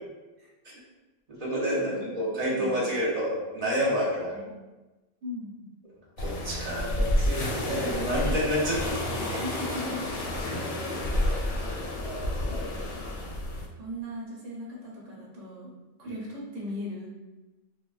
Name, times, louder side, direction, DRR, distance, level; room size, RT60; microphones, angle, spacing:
voice 1, 1.3-4.3 6.2-8.9 10.4-10.5 12.0-12.7 16.0-16.1, equal, 40° right, -6 dB, 0.6 m, -29 dB
voice 2, 1.8-2.9 4.3-4.5 5.2-5.6 9.3-10.1 12.6-13.0 13.8-15.7 16.0-17.1, left 1 dB, 75° right, -4 dB, 1.0 m, -39 dB
sound 1, 6.2-13.7, left 1 dB, 70° left, 0.8 m, -30 dB
3.2 x 2.1 x 2.3 m, 1.1 s
omnidirectional pair, 1.3 m